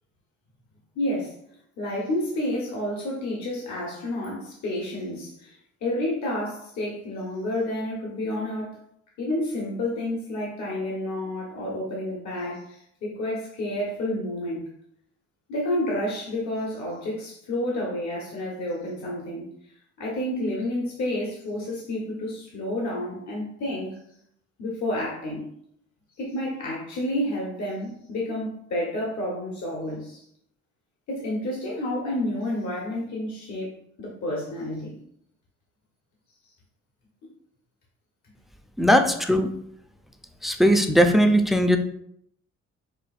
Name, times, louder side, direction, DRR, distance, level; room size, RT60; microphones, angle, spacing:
voice 1, 0.9-1.4 1.8-8.8 9.2-14.6 15.5-19.5 20.0-24.0 24.6-25.4 26.2-30.2 31.1-35.0, left 1 dB, 65° left, -3 dB, 1.1 m, -30 dB
voice 2, 38.8-39.5 40.4-41.8, equal, ahead, 5 dB, 0.4 m, -19 dB
6.3 x 2.6 x 2.4 m, 0.71 s
cardioid pair, 90°, 30 cm